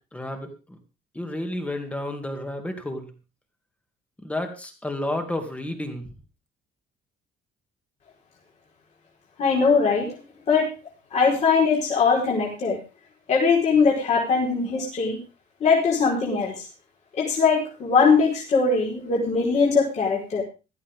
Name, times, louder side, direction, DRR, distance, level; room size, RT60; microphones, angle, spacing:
voice 1, 0.1-0.8 1.1-3.1 4.2-6.1, left 1 dB, 5° left, 5 dB, 2.5 m, -31 dB
voice 2, 9.4-10.1 10.5-10.7 11.1-12.8 13.3-15.2 15.6-16.7 17.1-20.4, left 5 dB, 40° left, -3 dB, 4.8 m, -21 dB
16.0 x 14.0 x 3.7 m, 0.32 s
cardioid pair, 175°, 18 cm